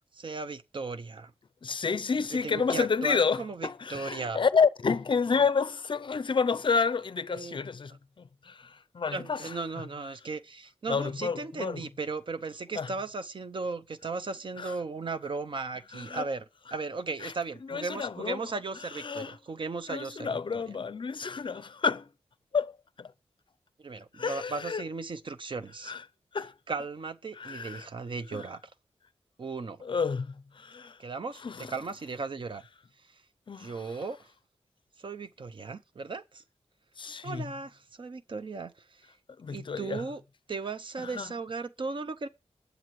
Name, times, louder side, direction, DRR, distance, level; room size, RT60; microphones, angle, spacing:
voice 1, 0.1-1.3 2.4-4.4 5.3-5.5 7.3-7.6 9.1-16.4 16.7-20.6 23.8-25.9 26.7-28.6 29.4-29.8 31.0-31.4 31.7-32.6 33.0-33.2 33.6-34.3 35.0-36.4 37.2-39.1 39.5-40.2 40.5-42.3, right 4 dB, 50° right, 0.7 m, -36 dB
voice 2, 1.6-9.6 10.9-11.8 12.7-12.9 14.6-14.8 15.9-16.2 17.2-17.3 17.6-18.4 18.7-19.4 19.9-22.1 22.5-23.1 24.1-24.8 25.8-26.0 26.3-26.5 27.4-27.9 28.3-28.4 29.8-31.0 31.4-31.7 33.5-34.0 37.0-37.4 39.4-40.1 41.0-41.3, left 5 dB, 50° left, 0.5 m, -30 dB
20.5 x 8.1 x 3.1 m
wide cardioid pair, 130°, 11 cm